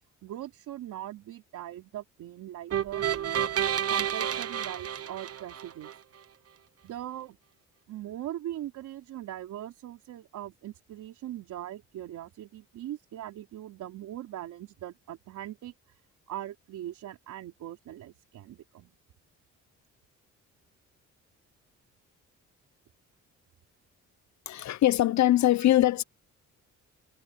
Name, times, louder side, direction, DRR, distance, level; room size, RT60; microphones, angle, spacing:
voice 1, 0.2-3.0 3.9-5.9 6.8-7.4 7.9-16.0 16.3-18.9 25.6-25.7, right 12 dB, 80° right, 3.6 m, -40 dB
sound 1, 2.7-5.9, right 9 dB, 55° right, 1.3 m, -30 dB
voice 2, 24.5-26.0, left 14 dB, 65° left, 0.9 m, -22 dB
cardioid pair, 90°, 30 cm